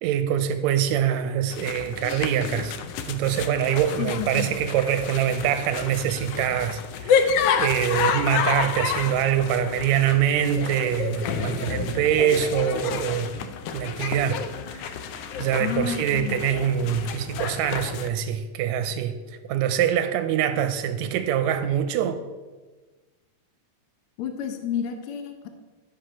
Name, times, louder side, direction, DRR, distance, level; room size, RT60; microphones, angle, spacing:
voice 1, 0.0-2.8 3.0-7.3 7.5-14.4 14.7-14.9 15.4-19.2 19.5-22.2, right 9 dB, 80° right, 1.7 m, -24 dB
sound 1, 1.5-18.1, left 7 dB, 90° left, 1.3 m, -29 dB
voice 2, 4.0-4.5 15.6-16.4 24.2-25.5, left 8 dB, 70° left, 1.4 m, -30 dB
12.0 x 5.8 x 5.1 m
omnidirectional pair, 3.5 m